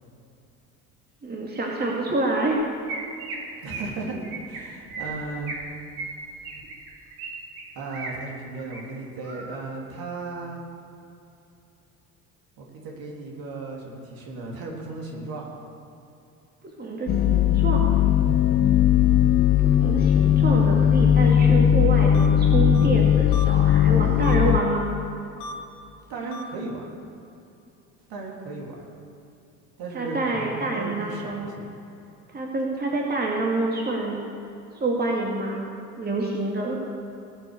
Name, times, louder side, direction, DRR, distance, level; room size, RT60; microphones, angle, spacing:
voice 1, 1.2-2.6 16.8-17.8 19.6-24.9 29.9-31.5 32.3-34.2 34.7-35.6 36.0-36.8, right 2 dB, 20° right, -1 dB, 2.3 m, -27 dB
Chirp tweet, 2.5-2.6 2.9-3.4 3.7-3.9 4.2-4.6 4.9-5.6 6.0-7.3 7.6-8.1 8.5-8.8 9.2-9.6, right 4 dB, 65° right, 2.7 m, -36 dB
voice 2, 3.6-5.5 7.7-10.6 12.6-15.5 26.1-26.8 28.1-28.9 29.8-31.7, right 3 dB, 50° right, -2 dB, 3.4 m, -35 dB
sound 1, 17.1-24.6, left 10 dB, 30° left, 0.8 m, -18 dB
sound 2, 22.1-22.3 22.7-22.9 23.3-23.5 24.2-24.4 25.4-25.5 26.3-26.4, left 1 dB, 55° left, 1.7 m, -37 dB
18.5 x 7.8 x 6.9 m, 2.7 s
figure-of-eight pair, 55°, 46 cm